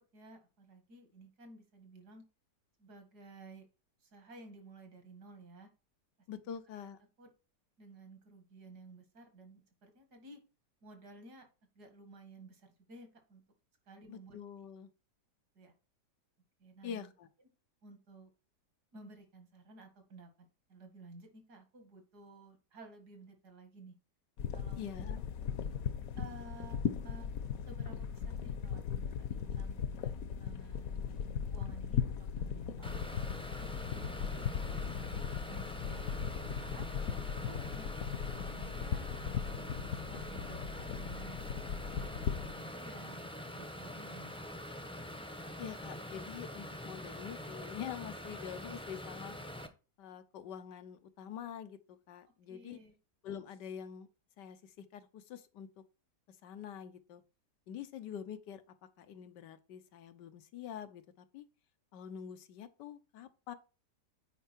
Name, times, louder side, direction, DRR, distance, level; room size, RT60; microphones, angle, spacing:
voice 1, 0.1-2.2 2.8-3.7 4.0-5.7 6.5-6.6 7.2-7.3 7.8-10.4 10.8-11.4 11.7-13.4 13.9-14.4 15.6-15.7 16.6-17.1 17.8-18.3 18.9-24.0 24.5-25.0 26.2-27.3 27.7-31.1 31.5-32.0 32.4-33.0 33.6-35.2 35.5-36.9 37.4-41.4 41.9-44.3 52.5-52.9, right 2 dB, 65° right, 2.5 m, -54 dB
voice 2, 6.3-7.0 14.1-14.9 16.8-17.3 24.7-25.2 45.6-49.4 50.0-52.8 53.2-54.1 54.4-55.8 56.3-57.2 57.7-58.6 59.0-61.5 61.9-63.5, left 8 dB, 90° left, 1.5 m, -46 dB
sound 1, 24.4-42.5, left 7 dB, 60° left, 1.2 m, -38 dB
sound 2, 32.8-49.7, left 1 dB, 5° left, 0.6 m, -45 dB
9.2 x 4.6 x 4.5 m
omnidirectional pair, 1.8 m